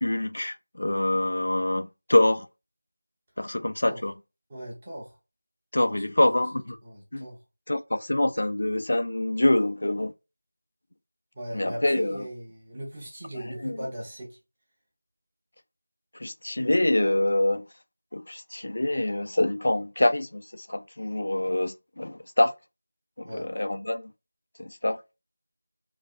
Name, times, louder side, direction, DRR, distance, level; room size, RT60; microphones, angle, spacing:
voice 1, 0.0-2.5 3.4-4.1 5.7-6.8 7.1-7.3 7.7-10.1 11.5-12.2 13.6-13.8 16.1-17.6 18.1-22.5 23.2-24.1 24.6-25.0, left 1 dB, 65° left, 0.3 m, -25 dB
voice 2, 4.5-5.2 5.9-6.0 6.8-7.4 11.3-14.4 23.2-23.5, right 1 dB, 25° right, 1.2 m, -38 dB
4.0 x 2.3 x 2.5 m
figure-of-eight pair, 170°, 0 cm